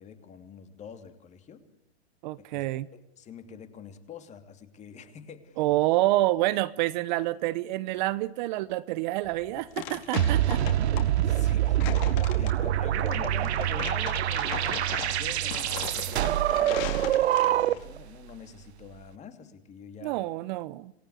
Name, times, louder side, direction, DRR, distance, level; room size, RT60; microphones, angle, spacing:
voice 1, 0.0-1.7 2.5-2.6 2.9-5.6 11.2-11.9 12.3-20.2, left 7 dB, 20° left, 9 dB, 2.9 m, -45 dB
voice 2, 2.2-2.9 5.6-10.6 20.0-20.9, right 17 dB, 45° right, 16 dB, 0.9 m, -27 dB
sound 1, 9.2-17.8, left 11 dB, 45° left, 4.6 m, -39 dB
sound 2, 10.2-18.0, right 12 dB, 70° right, 1.2 m, -25 dB
27.5 x 19.5 x 8.2 m, 0.83 s
hypercardioid pair, 140°, 33 cm